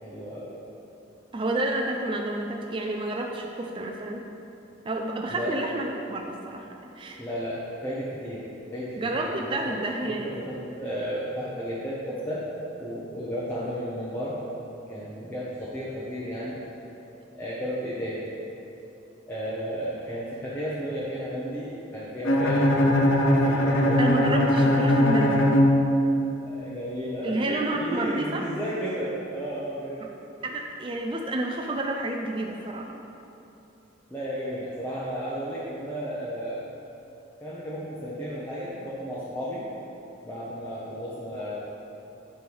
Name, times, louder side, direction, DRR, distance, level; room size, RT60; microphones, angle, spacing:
voice 1, 0.0-0.5 5.3-5.6 7.2-8.4 8.7-9.8 10.1-12.5 12.8-14.4 14.9-16.6 17.3-18.2 19.3-22.7 23.3-24.2 26.4-30.0 34.1-36.7 37.4-39.6 40.2-41.6, equal, 10° left, -9 dB, 0.9 m, -33 dB
voice 2, 1.3-4.2 4.8-7.2 9.0-10.3 24.0-25.5 27.2-28.5 30.0-30.1 30.4-33.0, right 1 dB, 25° right, 2 dB, 0.4 m, -30 dB
Bowed string instrument, 22.2-26.4, left 1 dB, 85° left, 0.8 m, -21 dB
9.9 x 3.3 x 6.2 m, 2.9 s
head